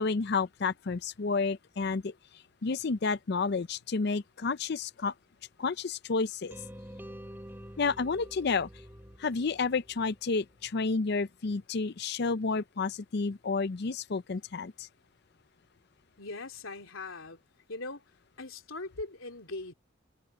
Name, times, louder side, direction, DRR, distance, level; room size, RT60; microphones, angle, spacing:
voice 1, 0.0-2.1 2.6-5.1 5.6-6.6 7.8-8.7 9.2-14.9, left 4 dB, 55° left, 0.5 m, -30 dB
sound 1, 6.5-10.6, equal, 10° right, 4.2 m, -48 dB
voice 2, 16.2-17.4 17.7-18.0 18.4-19.7, left 2 dB, 90° left, 3.4 m, -40 dB
head